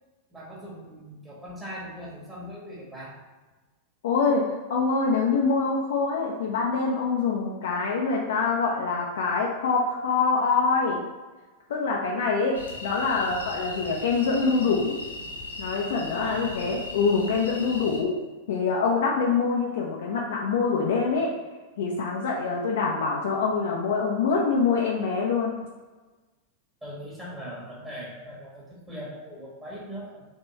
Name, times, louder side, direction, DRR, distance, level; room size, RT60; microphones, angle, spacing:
voice 1, 0.3-3.2 16.2-17.1 26.8-30.2, equal, 10° right, -6 dB, 1.3 m, -40 dB
voice 2, 4.0-11.0 11.7-15.0 15.6-18.2 18.5-21.3 21.8-25.6, left 4 dB, 60° left, -1 dB, 0.5 m, -25 dB
sound 1, 12.5-18.0, left 2 dB, 75° left, 0.9 m, -38 dB
3.6 x 3.3 x 4.1 m, 1.3 s
figure-of-eight pair, 90°, 0 cm